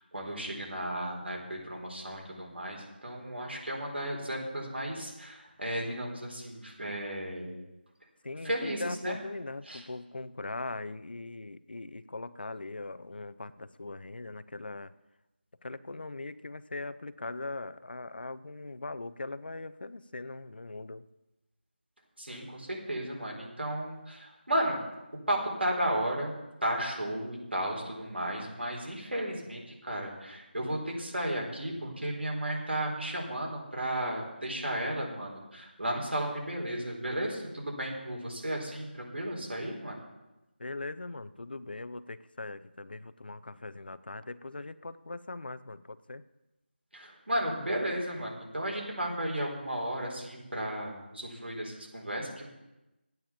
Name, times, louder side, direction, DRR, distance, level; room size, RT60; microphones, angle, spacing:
voice 1, 0.0-7.5 8.4-9.2 9.7-9.8 22.2-24.8 25.3-26.4 26.6-40.0 46.9-52.5, right 1 dB, 70° right, 0 dB, 4.3 m, -34 dB
voice 2, 8.2-14.9 15.6-21.0 40.6-46.2, left 2 dB, 55° left, 14 dB, 0.6 m, -40 dB
12.5 x 9.2 x 7.2 m, 1.0 s
figure-of-eight pair, 170°, 6 cm